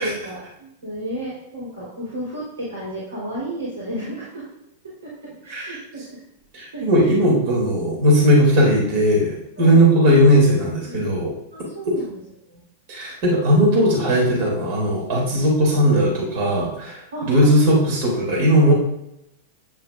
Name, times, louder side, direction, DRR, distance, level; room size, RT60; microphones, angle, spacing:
voice 1, 0.0-4.5 5.0-6.2 6.7-7.2 9.6-9.9 10.4-11.1 11.5-12.2 12.5-12.6 17.1-17.7, right 1 dB, 80° right, -7 dB, 4.0 m, -33 dB
voice 2, 6.5-11.3 12.9-18.7, equal, 55° right, -3 dB, 3.2 m, -18 dB
11.0 x 9.5 x 2.6 m, 0.82 s
figure-of-eight pair, 95°, 0 cm